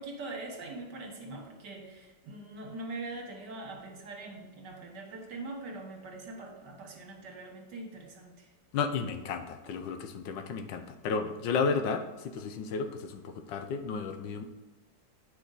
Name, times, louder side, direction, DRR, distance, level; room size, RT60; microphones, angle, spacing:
voice 1, 0.0-8.5, right 2 dB, 70° right, 1 dB, 1.9 m, -42 dB
voice 2, 8.7-14.4, left 5 dB, 85° left, 8 dB, 1.4 m, -33 dB
8.7 x 5.1 x 4.0 m, 1.2 s
omnidirectional pair, 2.0 m